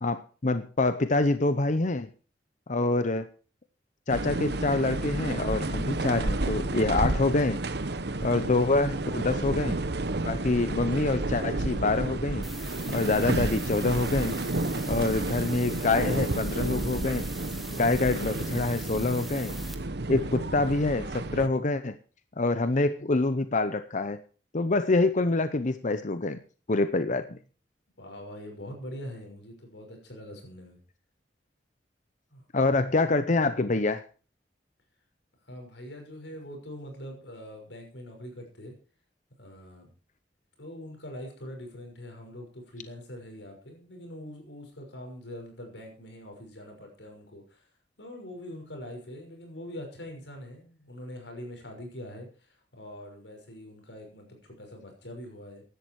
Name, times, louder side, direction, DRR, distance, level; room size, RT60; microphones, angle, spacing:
voice 1, 0.0-2.1 2.7-3.3 4.1-7.6 8.2-9.8 10.2-12.5 12.9-14.3 14.9-17.3 17.8-19.5 20.1-22.0 22.4-24.2 24.5-26.4 26.7-27.4 32.5-34.0, left 2 dB, 45° left, 11 dB, 0.8 m, -26 dB
sound 1, 4.1-21.5, right 2 dB, 65° right, 1.1 m, -31 dB
sound 2, 12.4-19.7, equal, ahead, 1.9 m, -44 dB
voice 2, 28.0-30.8 32.3-32.8 35.4-38.7 39.4-39.9 40.6-47.7 48.0-55.6, left 1 dB, 90° left, 3 dB, 6.0 m, -43 dB
16.0 x 11.5 x 4.8 m, 0.37 s
head